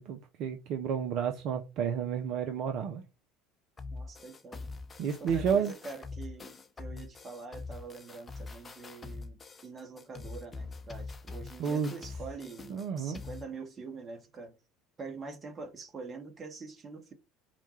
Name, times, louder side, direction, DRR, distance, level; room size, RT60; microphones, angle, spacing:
voice 1, 0.0-3.0 5.0-5.7 11.6-11.9 12.7-13.2, right 7 dB, 50° right, 0.5 m, -31 dB
sound 1, 3.8-13.5, left 3 dB, 25° left, 0.7 m, -44 dB
voice 2, 3.9-4.6 5.2-14.5 15.0-17.1, right 4 dB, 30° right, 1.2 m, -45 dB
4.3 x 2.3 x 4.2 m
figure-of-eight pair, 65°, 0 cm